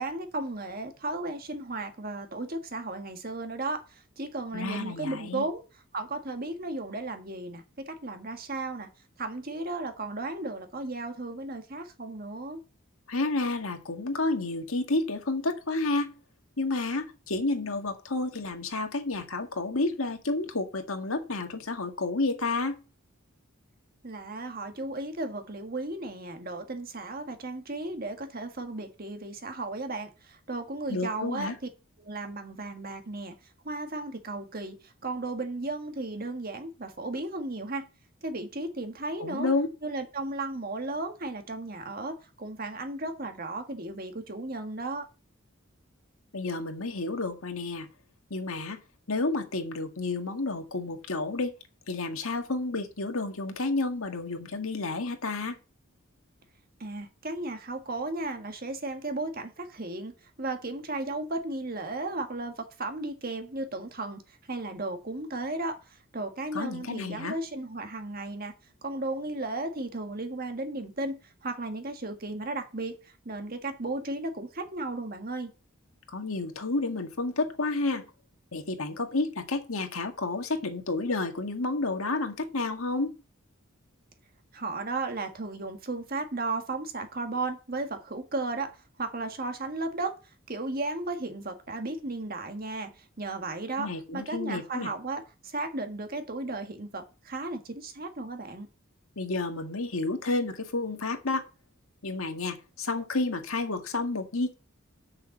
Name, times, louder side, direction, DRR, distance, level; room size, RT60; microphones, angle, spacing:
voice 1, 0.0-5.6 5.9-8.9 9.2-12.6 24.0-31.5 32.0-33.3 33.6-37.9 38.2-39.5 39.8-45.1 56.8-64.2 64.5-65.8 66.1-68.5 68.8-75.5 84.5-88.7 89.0-90.1 90.5-92.9 93.2-98.7, right 2 dB, 45° right, 1.6 m, -35 dB
voice 2, 4.5-5.5 13.1-16.1 16.6-22.8 30.9-31.6 39.2-39.7 46.3-47.9 48.3-48.8 49.1-51.5 51.9-55.6 66.5-67.4 76.1-78.1 78.5-83.1 93.8-94.9 99.2-101.4 102.0-104.5, left 3 dB, 80° left, 1.8 m, -30 dB
6.8 x 6.5 x 7.8 m
head